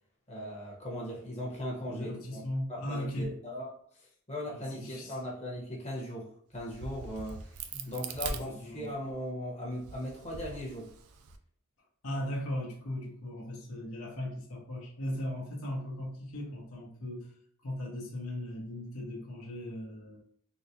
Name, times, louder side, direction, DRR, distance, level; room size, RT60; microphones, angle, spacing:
voice 1, 0.3-2.4 2.7-3.7 4.3-10.9, left 1 dB, 30° left, -3 dB, 1.0 m, -38 dB
voice 2, 1.8-3.3 4.5-5.2 7.7-7.9 8.5-8.9 12.0-17.3 17.6-20.2, left 1 dB, 80° left, -2 dB, 0.9 m, -38 dB
Crack, 6.5-9.2 9.7-11.4, right 5 dB, 90° right, 0.4 m, -42 dB
3.9 x 2.1 x 2.8 m, 0.63 s
head